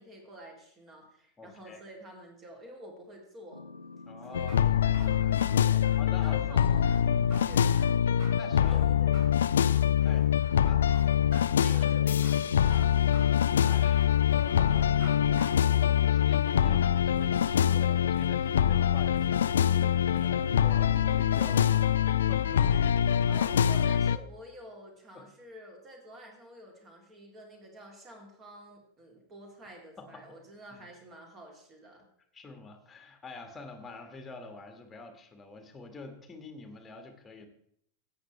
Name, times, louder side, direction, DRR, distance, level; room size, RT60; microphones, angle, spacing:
voice 1, 0.0-3.6 4.3-5.9 6.2-7.7 8.6-9.2 11.6-13.0 17.7-18.1 22.7-22.8 23.3-32.1, right 1 dB, 25° right, 1 dB, 3.1 m, -49 dB
voice 2, 1.4-1.8 4.1-5.4 6.0-6.6 7.0-7.3 8.4-8.8 10.0-10.9 13.6-15.0 15.7-23.0 25.1-25.2 30.0-30.4 30.7-30.8 32.3-37.5, left 3 dB, 15° left, 6 dB, 1.7 m, -47 dB
sound 1, 3.5-8.6 8.9-11.3 11.6-14.0 14.3-19.5 19.8-21.6, left 2 dB, 85° left, 0.8 m, -47 dB
sound 2, 4.2-15.1 15.4-15.5, right 1 dB, 40° right, 4.4 m, -50 dB
sound 3, 4.3-24.2, left 9 dB, 65° left, 0.3 m, -24 dB
13.5 x 8.6 x 3.3 m, 0.69 s
figure-of-eight pair, 90°, 0 cm